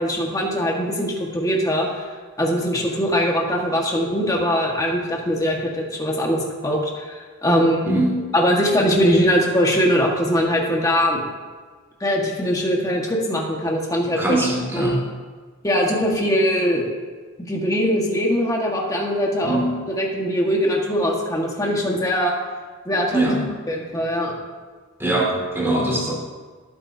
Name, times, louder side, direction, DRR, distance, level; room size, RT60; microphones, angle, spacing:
voice 1, 0.0-2.1 2.4-7.9 8.3-11.2 12.0-14.4 14.7-15.0 15.6-16.9 17.5-19.6 19.9-22.3 22.8-23.2 23.7-24.3, equal, 15° left, -1 dB, 1.7 m, -21 dB
voice 2, 7.8-8.3 14.2-15.0 19.4-19.9 23.1-23.4 25.0-26.1, right 1 dB, 10° right, -3 dB, 2.4 m, -22 dB
18.5 x 9.3 x 2.8 m, 1.5 s
head